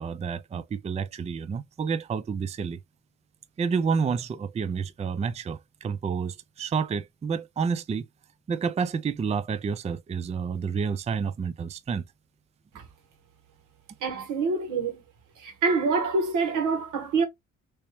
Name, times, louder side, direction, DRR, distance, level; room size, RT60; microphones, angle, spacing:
voice 1, 0.0-2.8 3.6-8.1 8.5-12.0, right 5 dB, 20° right, 0.4 m, -29 dB
voice 2, 14.0-15.0 15.4-17.3, right 4 dB, 85° right, 1.5 m, -26 dB
3.1 x 2.9 x 3.0 m
cardioid pair, 90°, 30 cm